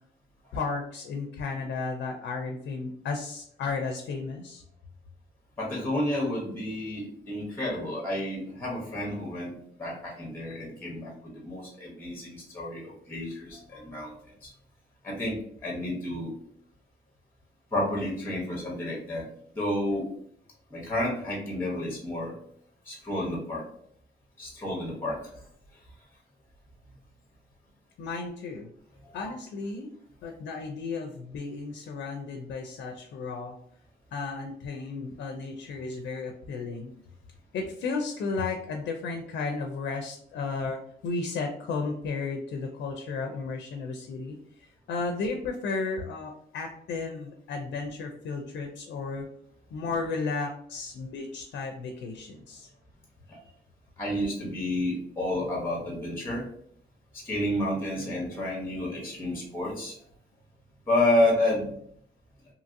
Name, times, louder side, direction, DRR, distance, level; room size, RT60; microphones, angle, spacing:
voice 1, 0.5-4.6 28.0-28.7 29.1-29.9 30.2-33.6 34.1-36.9 37.5-49.2 49.7-52.7, left 4 dB, 85° left, 4 dB, 0.4 m, -34 dB
voice 2, 5.6-9.5 9.8-14.1 14.4-14.5 15.0-16.3 17.7-19.3 19.5-20.1 20.7-22.4 22.8-23.6 24.4-25.2 29.0-29.1 53.3-53.4 54.0-56.5 57.1-60.0 60.9-61.7, left 1 dB, 10° left, -2 dB, 0.7 m, -30 dB
2.8 x 2.6 x 2.5 m, 0.67 s
cardioid pair, 145°, 18 cm